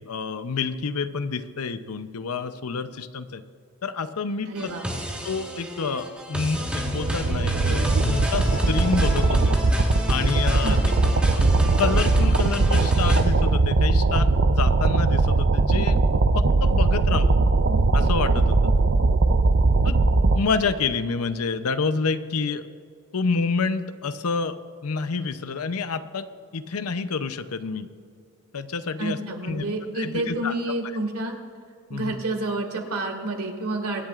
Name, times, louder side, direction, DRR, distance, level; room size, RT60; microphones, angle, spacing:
voice 1, 0.0-3.4 3.8-4.7 5.2-9.6 10.1-10.8 11.1-11.5 11.8-17.4 17.9-18.7 19.8-20.1 20.3-22.6 23.1-24.6 24.8-26.2 26.5-27.9 28.5-29.2 29.4-30.5 31.9-32.1, left 4 dB, 80° left, 11 dB, 0.7 m, -28 dB
voice 2, 4.5-4.9 10.6-10.9 29.0-31.3 31.9-34.0, right 2 dB, 85° right, 2 dB, 2.2 m, -29 dB
sound 1, 4.6-13.2, equal, 5° right, 1.5 m, -30 dB
sound 2, 6.7-20.4, right 3 dB, 55° right, 0.5 m, -20 dB
24.5 x 10.5 x 2.5 m, 2.4 s
head